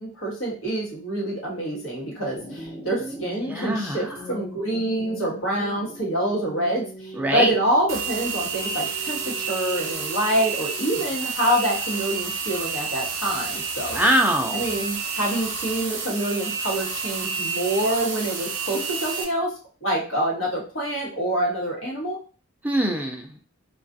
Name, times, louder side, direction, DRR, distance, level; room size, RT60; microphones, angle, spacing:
voice 1, 0.0-14.0 14.5-19.5 19.8-22.2, right 1 dB, 70° left, -3 dB, 1.1 m, -26 dB
sound 1, 2.3-11.3, equal, 25° left, 0.7 m, -40 dB
voice 2, 3.4-4.2 7.2-7.5 13.9-14.6 22.6-23.3, right 1 dB, 10° right, 2 dB, 0.3 m, -23 dB
sound 2, 7.9-19.2, right 5 dB, 60° right, 0.6 m, -30 dB
2.3 x 2.3 x 2.5 m, 0.38 s
head